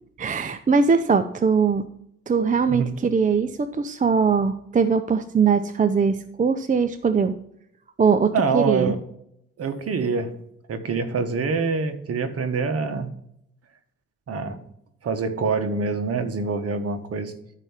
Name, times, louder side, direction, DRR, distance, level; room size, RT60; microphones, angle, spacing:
voice 1, 0.2-1.9 2.3-7.4 8.0-8.9, right 5 dB, 25° right, 10 dB, 0.6 m, -21 dB
voice 2, 8.3-9.0 9.6-10.4 10.7-13.1 14.3-14.6 15.0-17.3, right 4 dB, 50° right, 7 dB, 1.4 m, -25 dB
12.5 x 4.7 x 5.7 m, 0.75 s
cardioid pair, 90°, 30 cm